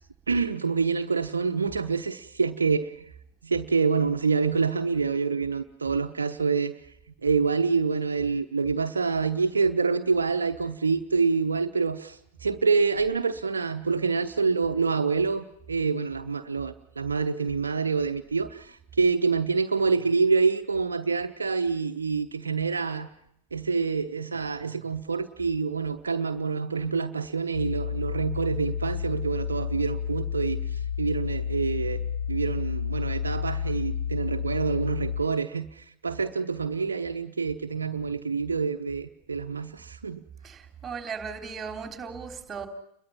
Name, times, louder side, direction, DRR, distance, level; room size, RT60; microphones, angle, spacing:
voice 1, 0.3-3.1 3.4-6.8 7.2-23.1 23.5-32.0 32.3-40.2, right 5 dB, 75° right, 7 dB, 0.9 m, -27 dB
sound 1, 27.5-35.2, left 7 dB, 75° left, 1.7 m, -31 dB
voice 2, 40.4-42.7, right 6 dB, 20° right, 5 dB, 3.6 m, -37 dB
29.5 x 22.0 x 5.7 m, 0.77 s
figure-of-eight pair, 90°, 0 cm